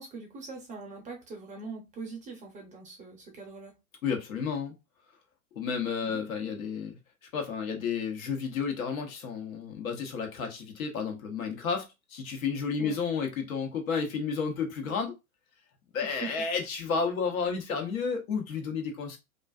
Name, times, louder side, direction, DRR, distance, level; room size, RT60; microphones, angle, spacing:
voice 1, 0.0-3.7 6.0-6.2 12.8-13.0 16.0-16.3, right 4 dB, 15° right, 0.6 m, -42 dB
voice 2, 4.0-4.7 5.5-7.0 7.3-15.2 15.9-19.2, left 5 dB, 70° left, 1.0 m, -31 dB
2.4 x 2.4 x 2.3 m
hypercardioid pair, 110°, 44 cm